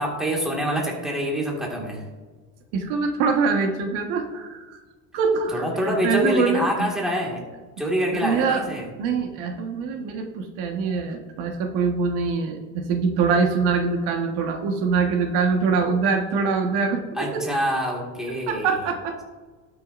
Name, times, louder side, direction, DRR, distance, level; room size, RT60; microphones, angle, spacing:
voice 1, 0.0-2.0 5.5-7.4 7.8-8.9 17.2-18.8, equal, ahead, -2 dB, 1.9 m, -26 dB
voice 2, 2.7-4.8 5.1-6.9 8.1-8.7 9.0-17.4 18.5-19.2, right 5 dB, 75° right, 4 dB, 1.5 m, -24 dB
19.0 x 6.8 x 2.6 m, 1.4 s
cardioid pair, 165°, 39 cm